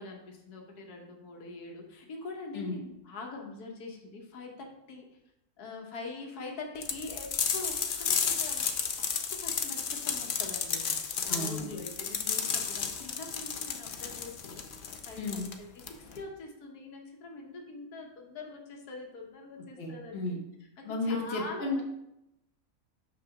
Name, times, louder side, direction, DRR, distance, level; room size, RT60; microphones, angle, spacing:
voice 1, 0.0-5.1 5.6-8.7 8.9-21.8, left 3 dB, 90° left, 1 dB, 1.6 m, -44 dB
sound 1, 6.8-16.2, left 6 dB, 60° left, 0.5 m, -32 dB
voice 2, 11.3-11.7 15.2-15.4 19.8-20.4 20.8-21.8, left 2 dB, 45° left, 0 dB, 1.4 m, -33 dB
5.9 x 3.8 x 5.8 m, 0.84 s
omnidirectional pair, 1.6 m